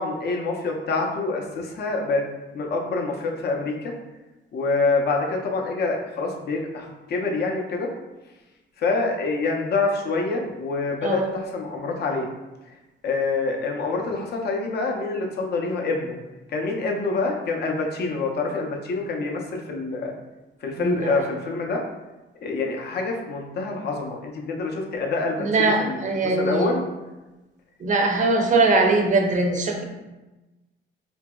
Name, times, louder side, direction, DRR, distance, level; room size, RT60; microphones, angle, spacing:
voice 1, 0.0-2.2 2.5-3.9 4.5-7.9 8.8-12.3 13.0-16.2 16.5-20.1 20.6-21.8 22.4-26.8, left 3 dB, 55° left, 1 dB, 0.5 m, -26 dB
voice 2, 11.0-11.3 20.8-21.1 25.4-26.7 27.8-29.8, right 3 dB, 40° right, 2 dB, 0.5 m, -21 dB
2.8 x 2.6 x 2.3 m, 1.1 s
cardioid pair, 90°, 20 cm